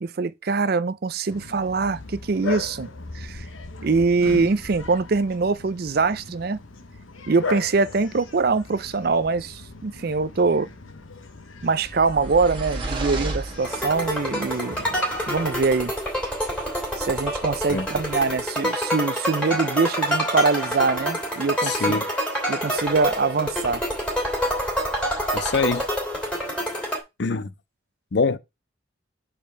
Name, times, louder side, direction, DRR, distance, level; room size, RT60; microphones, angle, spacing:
voice 1, 0.0-2.9 3.1-3.5 3.8-6.6 7.3-10.7 11.6-14.8 15.3-15.9 17.0-21.9 22.5-23.8, right 4 dB, 50° right, 0.5 m, -23 dB
Bark, 1.3-15.6, left 4 dB, 90° left, 1.1 m, -38 dB
sound 1, 11.8-14.2, right 2 dB, 25° right, 1.5 m, -31 dB
sound 2, 13.6-27.0, equal, 5° left, 2.6 m, -27 dB
voice 2, 21.6-22.1 25.3-25.9 27.2-27.5 28.1-28.4, left 4 dB, 60° left, 0.5 m, -24 dB
5.1 x 4.5 x 6.0 m
head